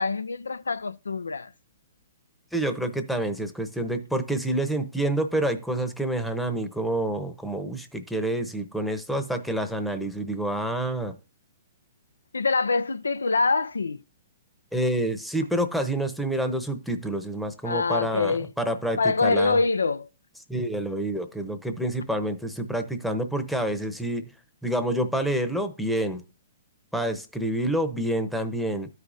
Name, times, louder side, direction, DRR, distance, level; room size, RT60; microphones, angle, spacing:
voice 1, 0.0-1.5 12.3-14.0 17.6-18.5 19.0-20.1, left 4 dB, 90° left, 0.3 m, -25 dB
voice 2, 2.5-11.2 14.7-19.6 20.5-24.3 24.6-26.2 26.9-28.9, right 1 dB, ahead, 0.8 m, -28 dB
13.5 x 4.9 x 2.6 m
hypercardioid pair, 125°, 0 cm